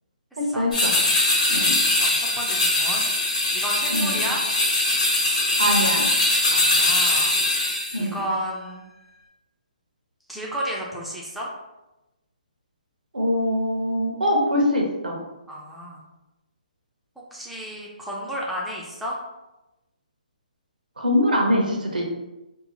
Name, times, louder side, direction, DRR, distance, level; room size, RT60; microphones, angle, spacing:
voice 1, 0.4-1.0 1.5-1.8 3.9-4.2 5.6-6.1 7.9-8.2 13.1-15.2 21.0-22.0, equal, 90° right, 0 dB, 0.7 m, -23 dB
sound 1, 0.7-8.0, left 2 dB, 60° left, 0.9 m, -21 dB
voice 2, 1.6-4.4 6.5-8.8 10.3-11.5 15.5-16.0 17.3-19.2, equal, ahead, -5 dB, 0.4 m, -33 dB
2.7 x 2.0 x 2.9 m, 0.99 s
hypercardioid pair, 150°, 5 cm